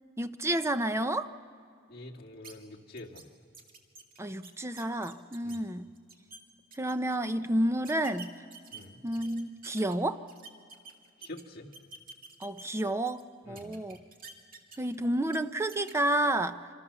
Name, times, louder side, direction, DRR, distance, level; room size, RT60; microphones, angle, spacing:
voice 1, 0.2-1.3 4.2-5.9 6.8-8.3 9.0-10.2 12.4-14.0 14.8-16.6, right 1 dB, 15° right, 10 dB, 0.7 m, -30 dB
voice 2, 1.9-3.3 5.4-5.6 8.7-9.1 11.2-11.7 13.4-13.8, left 1 dB, 55° left, -2 dB, 2.2 m, -46 dB
sound 1, 2.4-2.5 3.0-3.2 3.5-5.6 6.0-6.4 6.7-7.2 7.8-9.9 10.3-11.4 11.7-13.2 13.6-15.0 15.3-15.4 15.7-15.9, right 4 dB, 45° right, 2.3 m, -49 dB
27.0 x 25.0 x 7.0 m, 2.3 s
head